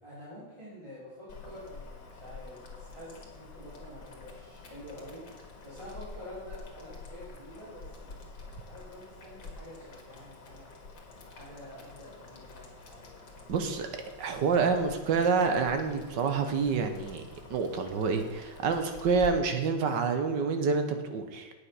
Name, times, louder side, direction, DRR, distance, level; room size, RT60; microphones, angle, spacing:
voice 1, 0.0-8.2 8.5-10.7 11.3-13.2, left 1 dB, 15° right, -10 dB, 3.3 m, -48 dB
Boiling, 1.3-19.3, left 3 dB, 65° left, 2.5 m, -48 dB
voice 2, 13.5-13.9 14.2-21.5, right 5 dB, 65° right, 7 dB, 1.5 m, -28 dB
8.8 x 8.0 x 5.6 m, 1.1 s
omnidirectional pair, 2.3 m